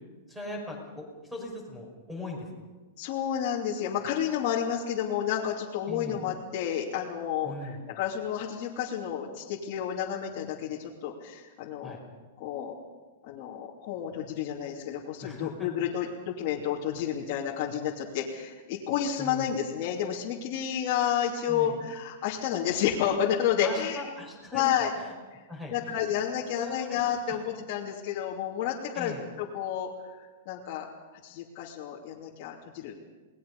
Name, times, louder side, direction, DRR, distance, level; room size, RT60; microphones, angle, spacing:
voice 1, 0.3-2.5 5.9-6.2 7.4-7.8 11.8-12.0 15.2-15.7 19.2-19.5 21.5-21.8 23.6-24.6 25.0-25.1 25.5-26.0 26.6-27.4 28.9-29.2, left 2 dB, 5° right, 1 dB, 5.5 m, -40 dB
voice 2, 3.0-12.0 12.4-12.7 13.2-24.1 24.5-24.9 25.3-25.4 25.7-29.9 30.5-30.9 31.2-32.9, left 9 dB, 40° left, -5 dB, 2.9 m, -30 dB
29.0 x 20.0 x 5.5 m, 1.3 s
supercardioid pair, 165°, 0 cm